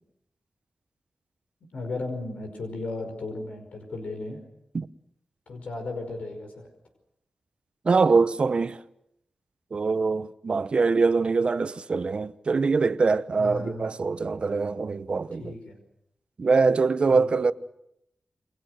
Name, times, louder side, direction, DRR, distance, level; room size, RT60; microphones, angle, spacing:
voice 1, 1.7-4.4 5.5-6.7 13.4-13.9 15.4-15.8 17.1-17.3, left 2 dB, 85° left, 5.3 m, -35 dB
voice 2, 7.8-8.8 9.7-15.6 16.4-17.5, right 4 dB, 50° right, 0.9 m, -23 dB
29.0 x 23.0 x 6.6 m
wide cardioid pair, 85°, 2 cm